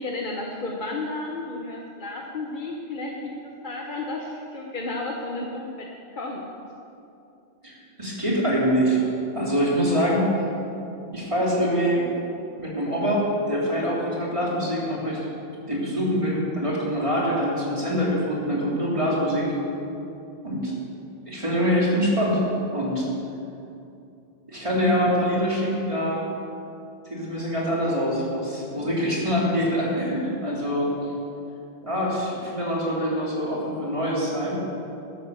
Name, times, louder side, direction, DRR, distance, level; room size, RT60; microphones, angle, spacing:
voice 1, 0.0-5.9 6.1-6.5, left 2 dB, 45° left, -1 dB, 1.3 m, -32 dB
voice 2, 8.0-9.0 9.3-10.3 11.1-12.0 12.6-15.2 15.7-19.5 20.4-20.7 21.3-22.4 22.7-23.1 24.5-26.2 27.1-30.9 31.8-34.5, equal, 25° right, -5 dB, 3.6 m, -24 dB
13.5 x 11.0 x 7.0 m, 2.7 s
omnidirectional pair, 1.2 m